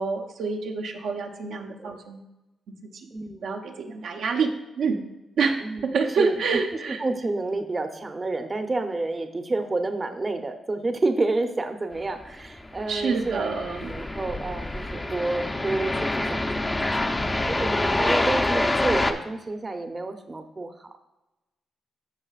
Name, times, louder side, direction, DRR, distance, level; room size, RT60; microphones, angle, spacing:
voice 1, 0.0-2.3 2.8-2.9 3.4-5.0 5.4-7.0 12.9-13.9, right 5 dB, 85° right, 1 dB, 0.9 m, -27 dB
voice 2, 3.1-3.5 5.6-5.9 6.2-6.4 7.0-13.5 13.8-16.8 17.0-21.0, right 2 dB, 35° right, 6 dB, 0.8 m, -29 dB
sound 1, 12.5-19.1, left 1 dB, 20° left, 0.7 m, -26 dB
13.5 x 5.4 x 2.4 m, 0.98 s
cardioid pair, 70°, 0 cm